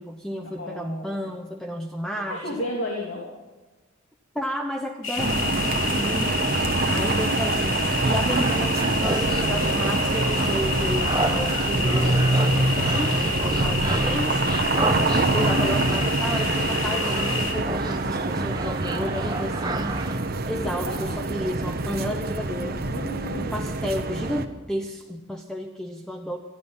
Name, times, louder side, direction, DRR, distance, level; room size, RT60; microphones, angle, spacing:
voice 1, 0.0-2.4 4.3-6.4 6.9-14.4 15.1-20.0 20.5-22.9 23.4-26.4, equal, 5° left, 3 dB, 0.8 m, -32 dB
voice 2, 0.6-1.2 2.3-3.3 6.8-7.6 14.5-15.1 20.9-21.1 22.8-23.7, left 1 dB, 65° left, -2 dB, 3.0 m, -34 dB
sound 1, 5.0-17.5, left 4 dB, 85° left, 3.0 m, -29 dB
sound 2, 5.2-24.5, right 2 dB, 50° right, 1.1 m, -25 dB
sound 3, 8.3-20.2, right 2 dB, 20° right, 1.2 m, -32 dB
19.5 x 13.0 x 5.6 m, 1.2 s
head